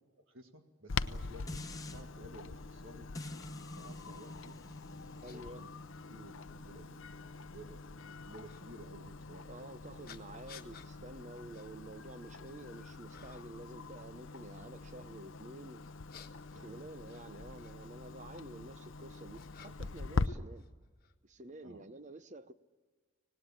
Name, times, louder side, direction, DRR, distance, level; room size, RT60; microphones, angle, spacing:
voice 1, 0.3-1.6 1.9-3.1 3.7-4.6 5.1-5.7 6.1-9.7 16.5-16.9 21.6-21.9, right 1 dB, 70° right, 1.9 m, -54 dB
Clock, 0.9-20.3, left 4 dB, 65° left, 0.7 m, -43 dB
sound 1, 1.5-2.0 3.1-8.3 8.7-8.8, left 1 dB, 15° left, 1.0 m, -49 dB
sound 2, 4.7-4.8 5.2-5.4 6.3-6.4 8.4-8.6 10.1-10.9 11.5-11.7 12.1-12.7 13.1-13.6 15.8-17.8 18.7-20.0 20.3-21.1, left 6 dB, 45° left, 1.4 m, -56 dB
voice 2, 5.2-5.6 9.4-15.8 16.6-20.7 21.2-22.5, right 1 dB, 35° right, 0.8 m, -50 dB
25.5 x 19.0 x 8.8 m
head